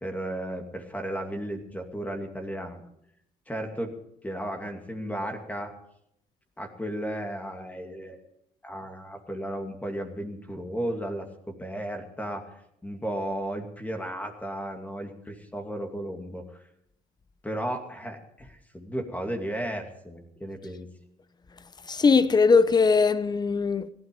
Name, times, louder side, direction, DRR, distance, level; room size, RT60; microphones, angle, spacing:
voice 1, 0.0-2.8 3.5-3.9 4.2-5.8 6.6-8.2 8.6-12.5 12.8-16.6 17.4-20.9, right 1 dB, 10° left, 2.5 m, -34 dB
voice 2, 21.9-23.9, left 4 dB, 25° left, 0.8 m, -20 dB
17.0 x 12.5 x 5.4 m
cardioid pair, 110°, 17 cm